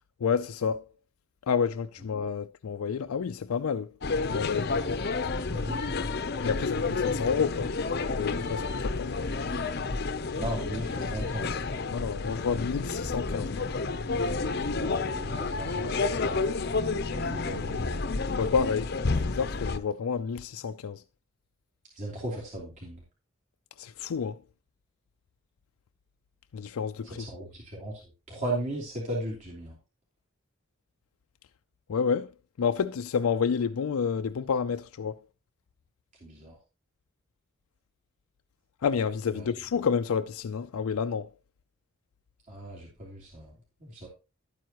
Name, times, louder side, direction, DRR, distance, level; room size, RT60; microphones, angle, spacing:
voice 1, 0.2-0.9 1.5-3.9 4.3-4.7 6.4-7.7 8.1-9.6 11.9-13.7 18.3-19.0 19.2-21.0 23.8-24.4 26.5-27.3 31.9-32.3 32.6-35.2 38.8-41.3, left 6 dB, 85° left, 0.4 m, -29 dB
sound 1, 4.0-19.8, left 3 dB, 50° left, 0.6 m, -30 dB
voice 2, 5.5-5.8 10.4-11.6 14.5-16.5 17.1-18.1 21.9-23.0 27.1-27.9 28.3-29.8 36.2-36.6 39.3-39.5 42.5-43.5 43.8-44.1, right 1 dB, 35° right, 3.2 m, -37 dB
11.5 x 9.3 x 3.0 m
head